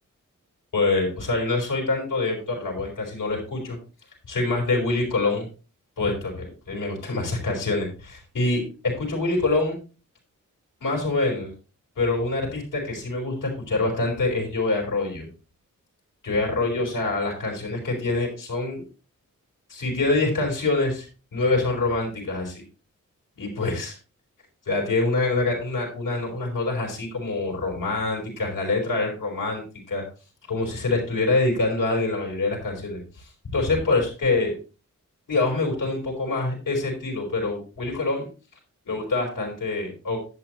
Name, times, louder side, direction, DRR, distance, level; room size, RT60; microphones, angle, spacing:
voice 1, 0.7-3.8 4.3-5.5 6.0-9.8 10.8-11.5 12.0-15.3 16.2-18.8 19.7-21.1 21.3-22.6 23.4-24.0 24.7-29.6 29.9-30.0 30.5-33.3 33.5-34.5 35.3-38.3 38.9-40.2, left 3 dB, 85° left, 0 dB, 4.8 m, -25 dB
11.0 x 8.6 x 3.1 m, 0.33 s
wide cardioid pair, 145°, 31 cm